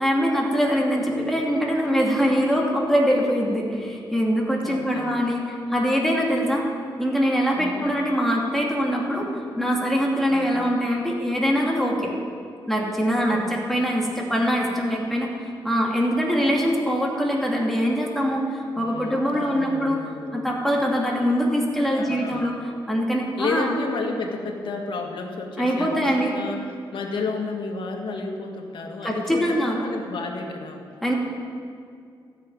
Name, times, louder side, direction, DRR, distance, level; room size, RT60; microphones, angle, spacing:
voice 1, 0.0-6.7 7.0-9.3 9.6-12.1 12.7-15.3 15.6-20.0 20.3-23.8 25.6-26.4 29.0-29.8 31.0-31.1, equal, 5° left, -2 dB, 2.5 m, -23 dB
voice 2, 4.6-5.1 7.6-7.9 10.3-10.6 13.3-13.4 18.7-20.4 21.9-22.4 23.4-26.6 26.9-30.8, left 4 dB, 75° left, 2 dB, 1.8 m, -32 dB
14.0 x 6.8 x 9.1 m, 2.3 s
cardioid pair, 95°, 9 cm